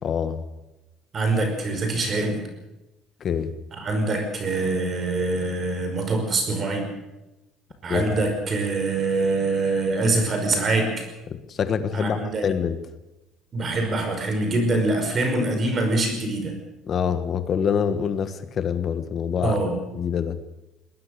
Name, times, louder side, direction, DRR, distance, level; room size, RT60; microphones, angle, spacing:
voice 1, 0.0-0.4 3.2-3.5 7.9-8.1 11.3-12.8 16.9-19.6 19.9-20.4, left 7 dB, 35° left, 11 dB, 1.4 m, -25 dB
voice 2, 1.1-2.4 3.7-6.9 7.8-11.1 11.9-12.5 13.5-16.6 19.4-19.8, right 2 dB, 30° right, 6 dB, 5.3 m, -24 dB
21.0 x 20.0 x 6.7 m, 0.99 s
cardioid pair, 165°, 0 cm